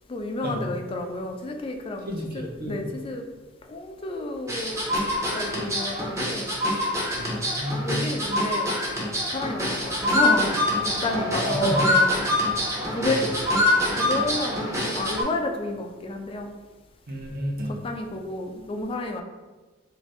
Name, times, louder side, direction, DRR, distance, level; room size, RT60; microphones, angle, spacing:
voice 1, 0.1-3.2 3.7-4.9 5.3-6.5 7.8-8.8 9.3-12.1 12.9-13.2 14.0-16.5 17.7-19.2, left 2 dB, 30° left, 4 dB, 0.3 m, -31 dB
voice 2, 2.1-2.8 7.2-7.9 11.1-11.8 12.9-13.3 17.1-17.8, equal, 50° right, -1 dB, 0.6 m, -30 dB
sound 1, 4.5-15.2, left 1 dB, 15° right, 0.7 m, -25 dB
2.8 x 2.5 x 3.1 m, 1.2 s
head